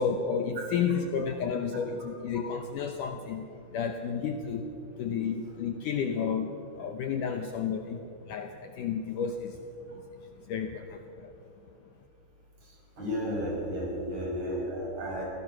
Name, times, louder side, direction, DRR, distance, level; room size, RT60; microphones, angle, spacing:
voice 1, 0.0-9.6 9.9-10.0 10.5-11.3, left 6 dB, 70° left, 5 dB, 2.1 m, -32 dB
voice 2, 12.6-15.2, equal, 45° right, -2 dB, 7.1 m, -33 dB
27.5 x 17.0 x 6.2 m, 2.9 s
omnidirectional pair, 4.5 m